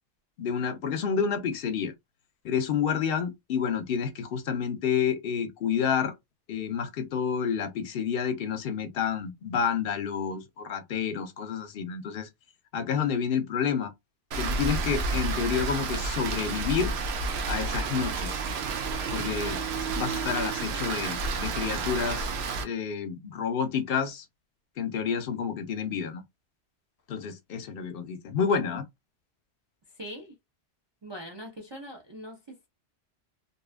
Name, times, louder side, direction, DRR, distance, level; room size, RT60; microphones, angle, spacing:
voice 1, 0.4-1.9 2.4-6.1 6.5-12.3 12.7-13.9 14.4-16.9 17.5-18.4 19.1-19.6 20.0-22.3 22.6-24.2 24.8-26.2 27.1-28.8, left 7 dB, 60° left, 0.7 m, -29 dB
Rain, 14.3-22.6, right 4 dB, 70° right, 0.8 m, -30 dB
voice 2, 29.9-30.3 31.0-32.7, equal, 40° right, 0.4 m, -42 dB
2.7 x 2.3 x 2.4 m
omnidirectional pair, 1.2 m